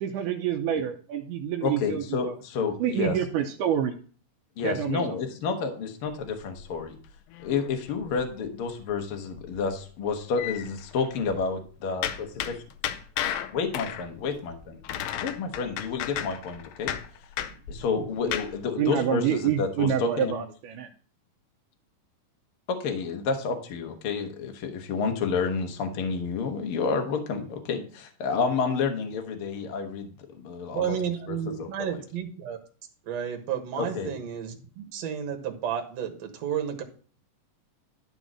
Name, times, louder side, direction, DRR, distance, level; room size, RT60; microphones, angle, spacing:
voice 1, 0.0-2.4 2.8-4.0 4.6-5.2 18.2-18.4 18.8-20.9, right 9 dB, 80° right, 2 dB, 2.0 m, -27 dB
voice 2, 1.6-3.1 4.6-7.0 7.4-12.1 12.5-12.6 13.5-14.8 15.2-16.9 17.7-20.3 22.7-30.9 31.3-31.7 33.8-34.1, left 5 dB, 60° left, 4 dB, 1.5 m, -30 dB
sound 1, 6.1-8.5 8.8-9.0 9.3-11.5 12.0-18.6, left 10 dB, 85° left, 2.3 m, -34 dB
voice 3, 30.7-32.6 33.1-36.8, right 8 dB, 60° right, 3 dB, 2.2 m, -32 dB
12.0 x 4.1 x 6.2 m, 0.43 s
omnidirectional pair, 4.1 m